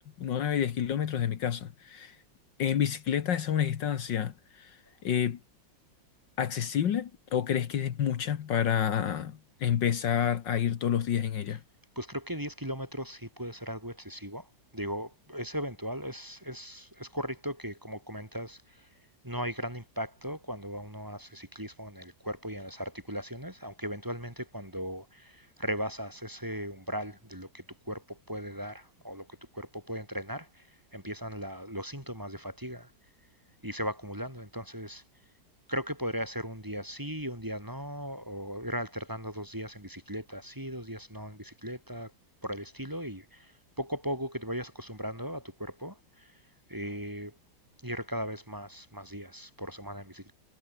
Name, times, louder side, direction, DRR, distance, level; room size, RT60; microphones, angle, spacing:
voice 1, 0.2-2.2 2.6-4.8 5.0-5.4 6.4-11.6, left 9 dB, 70° left, 1.9 m, -29 dB
voice 2, 12.0-18.9 19.2-30.7 30.9-32.9 33.6-35.0 35.7-42.1 42.4-46.4 46.7-47.4 47.8-50.3, equal, 10° right, 4.0 m, -38 dB
omnidirectional pair, 2.1 m